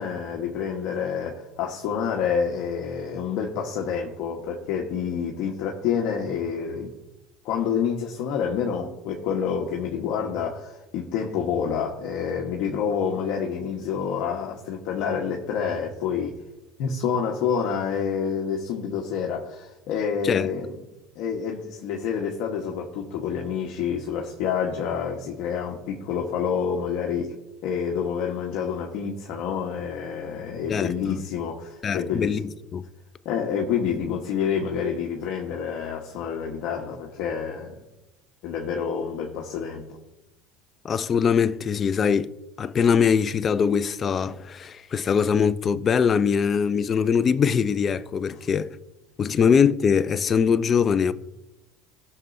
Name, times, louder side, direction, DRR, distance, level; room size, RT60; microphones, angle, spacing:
voice 1, 0.0-6.9 7.4-16.4 16.8-20.7 21.1-27.4 27.6-32.5 33.2-37.8 38.4-39.8 48.4-48.5 49.3-49.4, left 7 dB, 60° left, 1.2 m, -28 dB
voice 2, 30.7-31.2 31.8-32.4 32.7-32.9 40.8-42.3 42.6-48.7 49.2-51.1, left 6 dB, 30° left, 0.5 m, -22 dB
18.0 x 6.7 x 2.7 m
cardioid pair, 135°, 0 cm